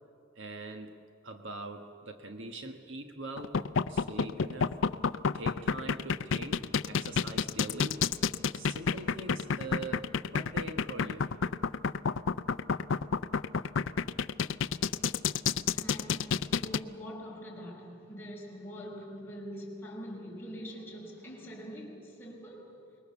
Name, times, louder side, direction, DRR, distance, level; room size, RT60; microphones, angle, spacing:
voice 1, 0.3-0.9 1.2-3.6 3.9-4.8 5.3-8.1 8.5-11.3, right 2 dB, 65° right, 1.5 m, -42 dB
sound 1, 3.4-16.8, left 5 dB, 65° left, 0.5 m, -29 dB
voice 2, 15.8-23.0, equal, 10° left, 5.0 m, -44 dB
26.0 x 21.5 x 7.1 m
head